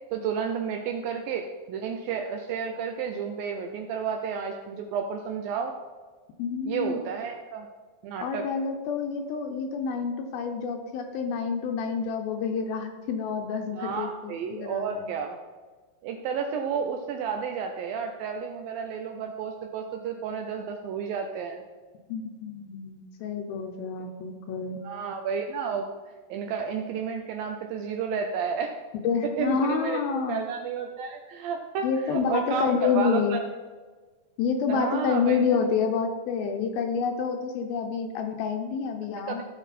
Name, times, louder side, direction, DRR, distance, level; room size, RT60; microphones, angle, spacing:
voice 1, 0.1-5.7 6.7-7.7 8.0-8.4 13.7-15.4 16.0-21.6 24.8-25.9 26.3-28.7 29.4-30.0 30.3-33.4 34.7-35.4 39.3-39.4, right 6 dB, 80° right, 4 dB, 2.2 m, -31 dB
voice 2, 6.4-7.0 8.2-15.1 22.1-24.8 29.0-30.4 31.8-33.4 34.4-39.4, left 6 dB, 80° left, 4 dB, 2.4 m, -28 dB
15.5 x 5.4 x 4.2 m, 1.4 s
omnidirectional pair, 4.7 m